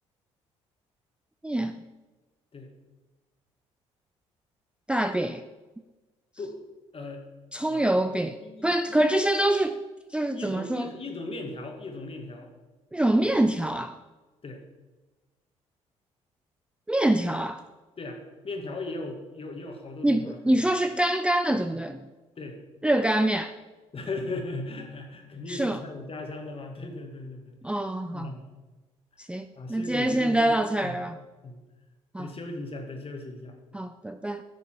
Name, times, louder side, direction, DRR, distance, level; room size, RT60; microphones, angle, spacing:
voice 1, 1.4-1.8 4.9-5.4 7.5-8.4 8.6-9.8 10.1-10.9 12.9-14.0 16.9-17.6 20.0-22.0 22.8-23.5 25.5-25.8 27.6-28.3 29.2-31.2 32.1-32.3 33.7-34.4, right 1 dB, 5° right, 8 dB, 0.5 m, -25 dB
voice 2, 6.9-7.3 7.7-8.1 8.4-9.0 10.3-12.5 14.4-14.6 18.0-20.6 22.4-22.6 23.9-27.6 28.1-28.5 29.6-30.5 30.8-31.1 31.4-31.6 32.2-33.6, left 2 dB, 35° left, 3 dB, 2.1 m, -37 dB
12.0 x 6.6 x 4.6 m, 1.2 s
hypercardioid pair, 50°, 16 cm